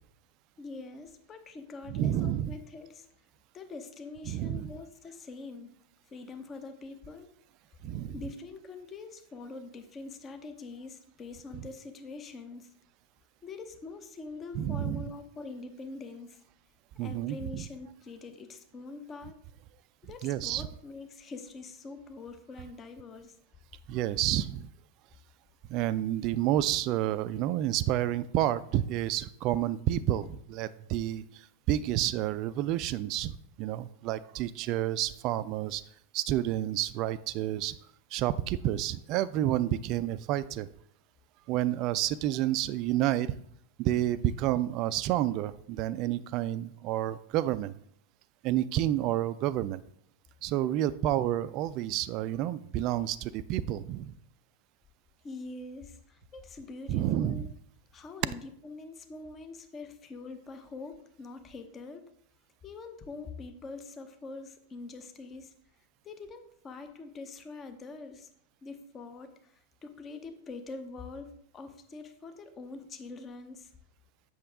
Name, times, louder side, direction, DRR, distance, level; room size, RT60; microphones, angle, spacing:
voice 1, 0.6-3.1 3.5-5.7 6.1-7.3 8.1-12.7 13.4-16.4 17.0-19.4 20.0-23.4 55.2-57.5 57.9-62.0 62.6-65.5 66.0-68.3 68.6-73.7, left 3 dB, 25° left, 8 dB, 0.9 m, -44 dB
voice 2, 1.9-2.5 4.3-4.7 7.8-8.1 14.5-15.1 17.0-17.6 20.2-20.7 23.9-24.7 25.7-31.2 31.7-35.8 36.1-37.7 38.1-40.7 41.5-43.3 43.8-47.7 48.4-49.8 50.4-54.1 56.9-57.5, right 13 dB, 40° right, 16 dB, 0.4 m, -29 dB
7.7 x 6.2 x 3.6 m, 0.69 s
figure-of-eight pair, 90°, 0 cm